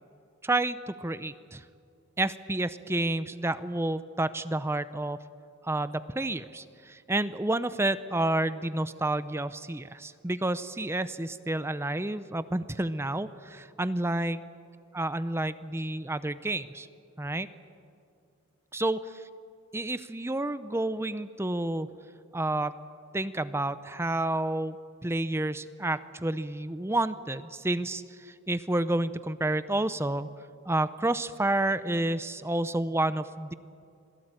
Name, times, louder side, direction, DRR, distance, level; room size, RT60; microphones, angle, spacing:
voice 1, 0.4-1.6 2.2-5.2 5.6-14.4 14.9-16.9 17.2-17.5 18.7-19.0 19.7-21.9 22.3-22.8 23.1-24.8 25.0-30.3 30.7-33.5, right 2 dB, 10° right, 13 dB, 0.6 m, -30 dB
26.5 x 18.5 x 9.0 m, 2.5 s
head